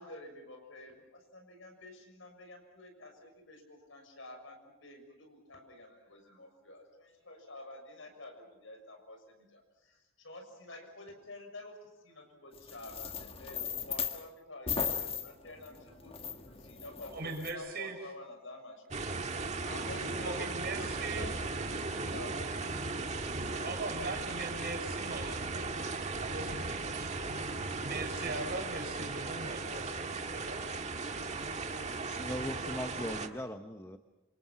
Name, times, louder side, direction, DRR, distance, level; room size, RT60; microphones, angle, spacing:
voice 1, 0.0-18.8 19.4-22.9 23.4-23.7, left 2 dB, 70° left, 4 dB, 6.7 m, -50 dB
sound 1, 12.5-14.2 14.7-17.5, left 6 dB, 30° left, 1.8 m, -37 dB
voice 2, 17.1-18.0 20.3-21.3 23.6-27.1 27.8-30.7, right 3 dB, 50° right, 4 dB, 6.0 m, -40 dB
sound 2, 18.9-33.3, right 3 dB, 35° right, 1.7 m, -37 dB
voice 3, 32.0-34.0, left 1 dB, 15° left, 8 dB, 0.9 m, -39 dB
27.5 x 27.0 x 5.8 m, 1.0 s
head